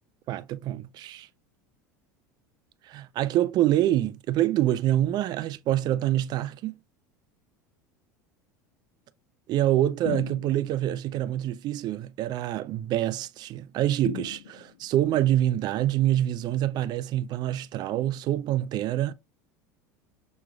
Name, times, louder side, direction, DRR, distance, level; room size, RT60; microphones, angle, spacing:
voice 1, 0.3-1.3 2.8-6.8 9.5-19.1, right 13 dB, 45° right, 0.4 m, -26 dB
sound 1, 10.1-10.9 14.1-15.0, left 12 dB, 85° left, 0.5 m, -37 dB
5.9 x 3.1 x 2.3 m
hypercardioid pair, 90°, 10 cm